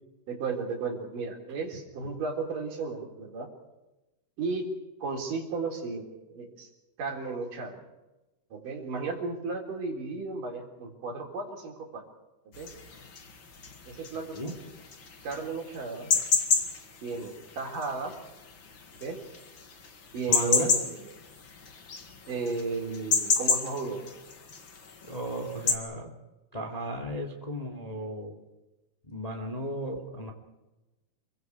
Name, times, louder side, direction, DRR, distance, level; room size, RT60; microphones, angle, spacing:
voice 1, 0.3-3.5 4.4-4.7 5.0-6.7 7.0-7.8 8.5-12.0 12.6-12.7 13.9-14.6 15.2-16.1 17.0-18.2 19.0-19.2 20.1-21.0 22.3-24.0, right 4 dB, 55° right, 1 dB, 5.1 m, -34 dB
sound 1, 12.5-25.8, left 5 dB, 40° left, 2.0 m, -30 dB
voice 2, 14.2-14.5 20.3-20.7 25.0-26.1 26.5-28.4 29.0-30.3, right 1 dB, 10° left, 3 dB, 2.1 m, -35 dB
28.0 x 24.0 x 4.8 m, 1.0 s
omnidirectional pair, 4.6 m